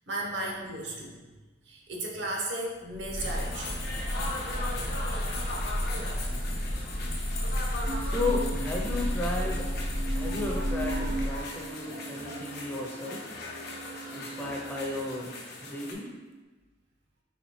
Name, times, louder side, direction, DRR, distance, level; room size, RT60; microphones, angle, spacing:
voice 1, 0.1-1.2 1.7-3.8 7.7-8.1, right 1 dB, 70° right, -1 dB, 0.8 m, -35 dB
Breathing / Bird, 2.9-11.4, equal, 85° right, 1.2 m, -32 dB
sound 1, 3.2-15.9, left 2 dB, 60° left, 0.7 m, -39 dB
sound 2, 7.9-15.3 15.9-16.4, right 3 dB, 50° right, 0.4 m, -40 dB
voice 2, 8.0-9.7 10.1-13.3 14.1-15.3 15.6-16.1, left 2 dB, 10° left, -2 dB, 0.5 m, -34 dB
4.1 x 3.5 x 3.1 m, 1.2 s
head